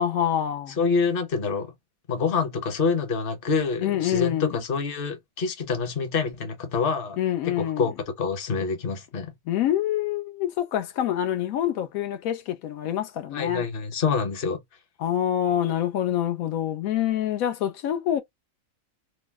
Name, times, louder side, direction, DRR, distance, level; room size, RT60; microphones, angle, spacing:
voice 1, 0.0-0.8 3.8-4.6 7.2-7.9 9.5-13.7 15.0-18.2, left 11 dB, 85° left, 1.0 m, -26 dB
voice 2, 0.8-1.7 2.1-7.2 7.4-7.9 8.2-9.3 13.3-14.6, left 5 dB, 45° left, 1.0 m, -26 dB
3.1 x 2.0 x 3.3 m
omnidirectional pair, 1.4 m